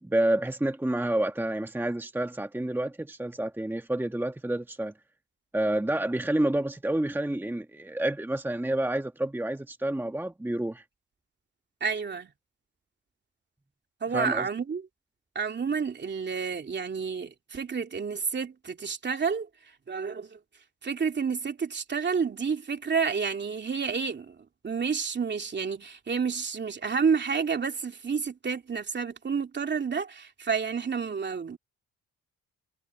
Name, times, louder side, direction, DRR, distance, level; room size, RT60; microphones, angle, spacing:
voice 1, 0.0-4.9 5.5-10.8 14.1-14.5, right 1 dB, 5° right, 1.5 m, -29 dB
voice 2, 11.8-12.3 14.0-14.9 15.3-19.5 19.9-20.4 20.8-24.3 24.6-31.6, right 5 dB, 35° right, 2.9 m, -30 dB
cardioid pair, 90°, 30 cm